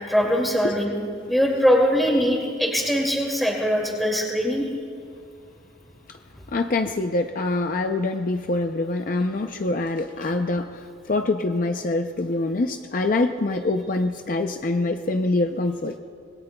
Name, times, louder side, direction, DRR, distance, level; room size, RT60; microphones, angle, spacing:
voice 1, 0.1-0.9 1.3-4.7, equal, ahead, -1 dB, 2.3 m, -21 dB
voice 2, 6.5-16.0, left 2 dB, 45° left, 6 dB, 0.5 m, -25 dB
26.5 x 20.5 x 2.3 m, 2.4 s
head